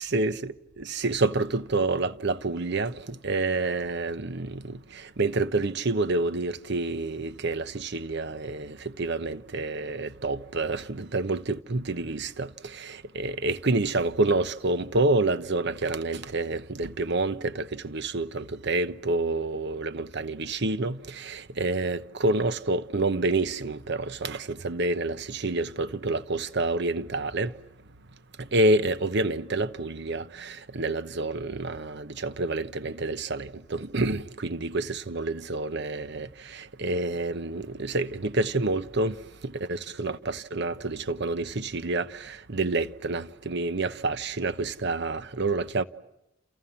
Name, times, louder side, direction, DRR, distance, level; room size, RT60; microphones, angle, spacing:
voice 1, 0.0-27.5 28.4-39.2 39.4-45.8, right 2 dB, 60° right, 1.0 m, -28 dB
29.0 x 28.5 x 7.2 m
head